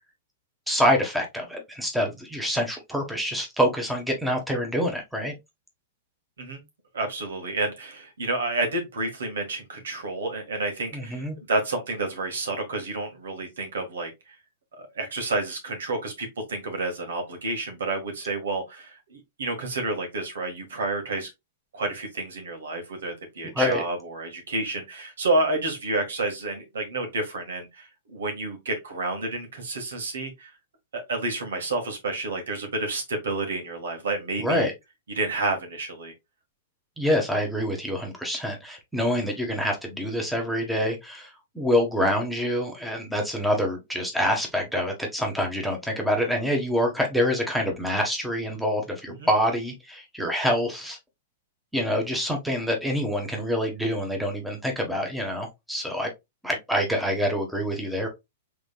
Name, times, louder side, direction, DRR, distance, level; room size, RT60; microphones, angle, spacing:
voice 1, 0.7-5.3 10.9-11.4 23.5-23.8 34.4-34.7 37.0-51.0 51.7-56.1 56.4-58.1, equal, ahead, 1.5 m, -26 dB
voice 2, 6.9-14.3 14.8-21.3 21.7-30.5 30.9-34.7 35.1-36.1 49.2-49.3, right 2 dB, 80° right, 1.9 m, -30 dB
4.9 x 3.7 x 2.4 m
hypercardioid pair, 120°, 0 cm